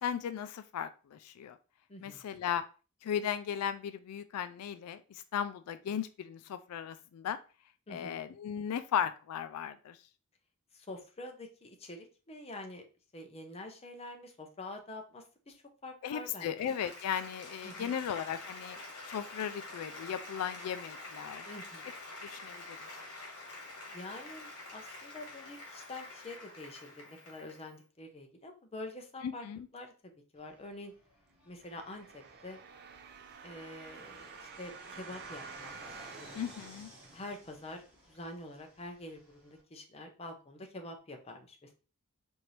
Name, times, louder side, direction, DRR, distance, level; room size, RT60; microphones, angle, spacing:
voice 1, 0.0-1.6 2.0-2.6 3.0-7.4 7.9-10.0 16.0-18.8 19.1-21.5 22.2-22.8 29.2-29.7 36.3-36.9, left 8 dB, 85° left, 12 dB, 0.3 m, -36 dB
voice 2, 1.9-2.2 7.9-8.2 10.7-12.9 13.1-16.6 17.6-17.9 21.5-21.9 23.9-29.5 29.7-30.9 31.5-32.6 33.4-35.8 36.2-36.5 37.1-41.7, left 2 dB, 30° left, 4 dB, 0.7 m, -46 dB
Applause, 16.2-27.7, left 2 dB, 70° left, 1.5 m, -47 dB
Fixed-wing aircraft airplane, 30.3-39.6, equal, 5° right, 1.2 m, -57 dB
sound 1, 31.6-37.5 38.1-38.2, right 5 dB, 45° right, 0.4 m, -50 dB
4.4 x 2.6 x 3.2 m, 0.34 s
head